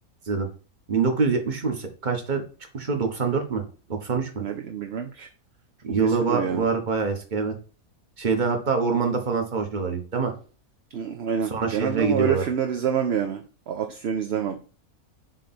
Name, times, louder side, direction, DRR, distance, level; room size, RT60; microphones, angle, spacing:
voice 1, 0.9-2.4 2.7-3.6 3.9-4.4 5.8-7.5 8.2-10.3 11.5-12.4, right 4 dB, 35° right, 4 dB, 1.2 m, -25 dB
voice 2, 4.4-5.3 6.0-6.7 10.9-14.6, right 8 dB, 55° right, 5 dB, 0.8 m, -27 dB
7.6 x 3.3 x 4.2 m, 0.37 s
omnidirectional pair, 1.5 m